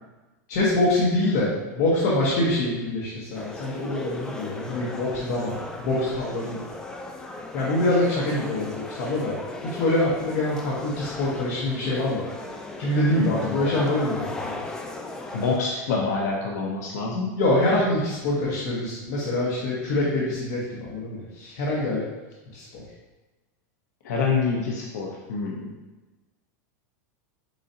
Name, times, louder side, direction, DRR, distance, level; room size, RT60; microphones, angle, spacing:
voice 1, 0.5-6.7 7.5-9.4 9.6-12.2 12.8-14.6 17.3-22.0 22.5-22.8, left 1 dB, 55° left, -6 dB, 1.2 m, -25 dB
sound 1, 3.3-15.6, left 2 dB, 5° left, 0.3 m, -37 dB
voice 2, 13.1-13.7 15.3-17.3 24.0-25.7, left 4 dB, 75° left, -1 dB, 0.7 m, -27 dB
4.8 x 4.0 x 2.8 m, 1.1 s
supercardioid pair, 150°, 9 cm